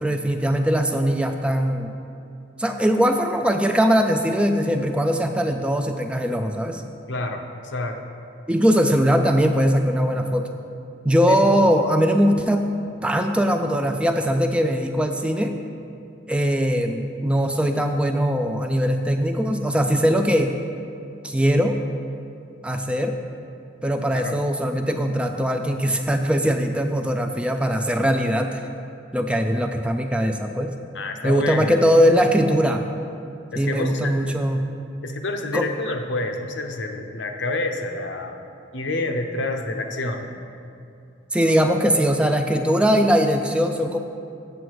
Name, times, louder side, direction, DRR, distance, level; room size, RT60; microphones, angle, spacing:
voice 1, 0.0-1.9 2.6-6.8 8.5-10.5 11.0-12.7 13.0-15.5 16.3-20.5 21.2-21.8 22.6-23.2 23.8-28.6 29.1-30.7 31.2-32.8 33.6-34.7 35.5-35.7 41.3-44.0, equal, 5° right, 5 dB, 0.3 m, -21 dB
voice 2, 7.1-8.0 11.3-11.4 24.1-24.4 30.9-31.8 33.5-34.1 35.0-38.4 38.7-40.3, left 2 dB, 80° left, 4 dB, 0.7 m, -28 dB
7.7 x 7.0 x 4.7 m, 2.5 s
head